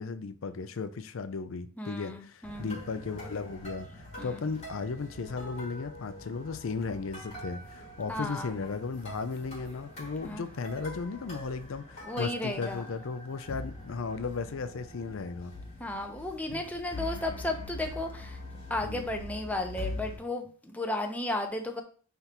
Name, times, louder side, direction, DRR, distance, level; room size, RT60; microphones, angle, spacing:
voice 1, 0.0-15.5 16.5-16.6 18.8-19.1, left 4 dB, 75° left, 0.5 m, -36 dB
voice 2, 1.8-2.8 4.2-4.4 8.1-8.6 10.2-10.4 12.0-12.8 15.8-18.4 18.7-21.8, left 2 dB, 5° left, 0.7 m, -34 dB
sound 1, 2.4-20.2, left 1 dB, 35° left, 2.9 m, -43 dB
9.5 x 3.4 x 3.0 m
head